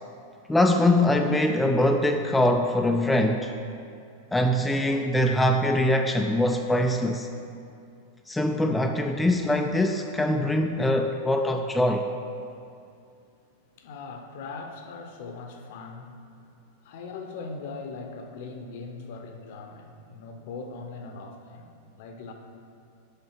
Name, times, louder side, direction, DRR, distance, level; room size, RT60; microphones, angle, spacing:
voice 1, 0.5-3.5 4.3-7.3 8.3-12.1, left 1 dB, 5° left, 3 dB, 0.3 m, -23 dB
voice 2, 13.8-16.2 16.8-22.3, left 4 dB, 50° left, 5 dB, 0.7 m, -40 dB
6.6 x 5.7 x 4.8 m, 2.5 s
figure-of-eight pair, 90°, 0 cm